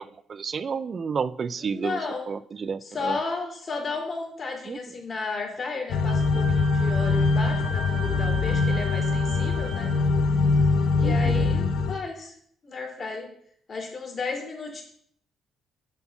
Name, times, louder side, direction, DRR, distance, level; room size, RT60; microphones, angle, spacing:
voice 1, 0.0-2.0 2.3-3.2 4.7-4.8 11.0-11.5, right 6 dB, 45° right, 15 dB, 0.3 m, -31 dB
voice 2, 1.6-2.3 2.8-9.9 10.9-12.3 12.6-13.3 13.7-14.8, left 3 dB, 40° left, 0 dB, 2.8 m, -33 dB
sound 1, 5.9-12.0, left 4 dB, 85° left, 0.8 m, -23 dB
Wind instrument woodwind instrument, 6.1-10.0, right 2 dB, 65° right, 1.6 m, -38 dB
8.9 x 3.9 x 7.0 m, 0.65 s
cardioid pair, 90°, 0 cm